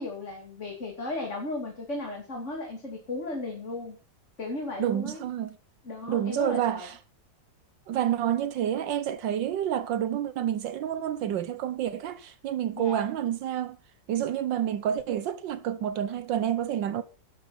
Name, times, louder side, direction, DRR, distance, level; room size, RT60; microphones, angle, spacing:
voice 1, 0.0-4.0 4.4-5.2 5.8-6.9 12.8-13.1, left 2 dB, 40° left, 3.1 m, -35 dB
voice 2, 4.8-5.6 6.1-6.9 7.9-13.8 14.1-17.0, right 10 dB, 80° right, 1.5 m, -29 dB
12.5 x 12.5 x 4.3 m
omnidirectional pair, 2.0 m